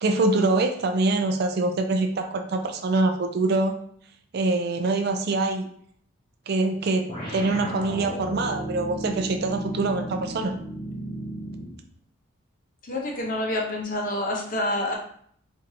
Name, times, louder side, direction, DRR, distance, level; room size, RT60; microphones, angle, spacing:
voice 1, 0.0-3.7 4.3-5.7 6.5-7.1 7.3-10.5, right 2 dB, 50° right, 6 dB, 0.3 m, -24 dB
sound 1, 7.1-11.8, right 1 dB, 20° left, 1.1 m, -34 dB
voice 2, 12.8-14.9, left 1 dB, 40° left, 0 dB, 0.7 m, -27 dB
4.7 x 2.5 x 2.8 m, 0.63 s
head